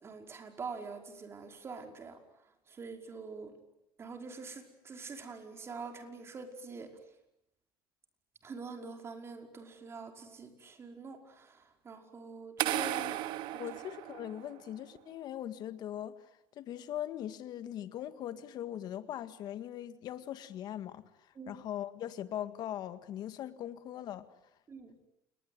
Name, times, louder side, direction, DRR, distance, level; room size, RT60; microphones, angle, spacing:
voice 1, 0.0-2.2 2.7-3.5 4.0-6.9 8.4-12.7 21.4-21.6 24.7-24.9, right 4 dB, 30° right, 4 dB, 5.3 m, -45 dB
sound 1, 12.6-14.7, right 15 dB, 70° right, 1.4 m, -35 dB
voice 2, 12.7-13.2 13.5-16.1 16.6-21.1 21.5-24.3, left 11 dB, 55° left, 11 dB, 1.9 m, -40 dB
29.0 x 21.0 x 9.6 m, 0.84 s
cardioid pair, 115°, 8 cm